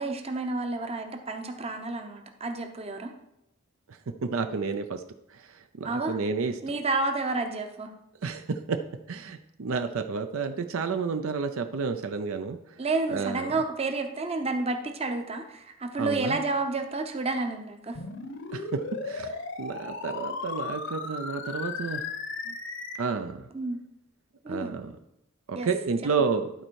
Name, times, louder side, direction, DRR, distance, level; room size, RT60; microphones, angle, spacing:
voice 1, 0.0-3.1 5.8-6.2 6.6-7.9 12.8-18.0 23.5-23.8 24.4-24.8 25.5-25.7 26.2-26.3, right 3 dB, 25° right, 5 dB, 0.8 m, -30 dB
voice 2, 3.9-5.0 5.3-6.5 8.2-8.8 9.1-12.8 13.1-13.5 16.0-16.4 18.5-22.1 22.5-22.6 23.0-23.4 24.5-24.9 25.5-26.5, right 5 dB, 70° right, 7 dB, 0.5 m, -31 dB
sound 1, 18.0-23.0, left 4 dB, 55° left, 0.8 m, -36 dB
11.5 x 4.3 x 4.6 m, 0.84 s
head